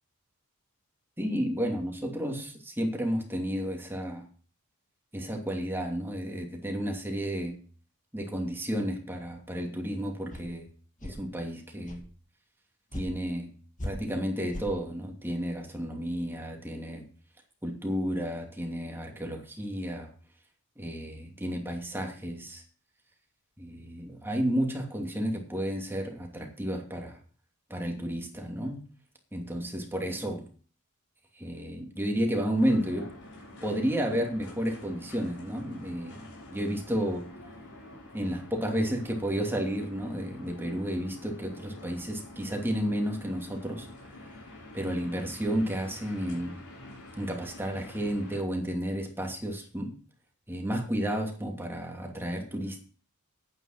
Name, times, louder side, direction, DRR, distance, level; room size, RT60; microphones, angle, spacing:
voice 1, 1.2-4.3 5.1-7.6 8.1-10.7 11.0-12.0 12.9-13.5 13.8-17.1 17.6-20.1 20.8-22.6 23.6-27.2 27.7-28.9 29.3-30.4 31.4-33.1 33.6-36.2 36.5-37.3 38.1-43.9 44.7-46.6 47.2-50.0 50.5-52.8, equal, 10° right, 1 dB, 2.7 m, -32 dB
sound 1, 10.3-10.4 11.0-11.2 11.8-12.1 12.9-13.1 13.8-13.9 14.5-14.7, left 1 dB, 35° left, 2.4 m, -37 dB
sound 2, 32.5-48.4, left 2 dB, 75° left, 5.2 m, -47 dB
9.7 x 9.2 x 5.9 m, 0.41 s
head